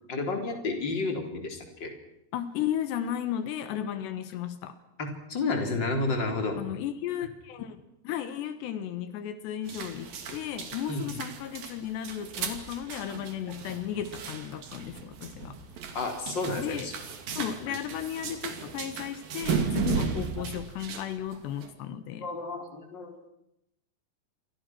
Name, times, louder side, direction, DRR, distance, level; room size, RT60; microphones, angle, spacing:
voice 1, 0.1-1.9 5.0-6.6 10.9-11.0 15.9-16.9 22.2-23.3, left 3 dB, 25° left, 4 dB, 4.3 m, -31 dB
voice 2, 2.3-4.8 6.6-15.6 16.6-16.9 17.4-22.3, left 10 dB, 80° left, 11 dB, 3.5 m, -34 dB
sound 1, 9.7-21.7, right 6 dB, 60° right, 4.2 m, -35 dB
29.0 x 25.0 x 6.2 m, 0.82 s
omnidirectional pair, 4.9 m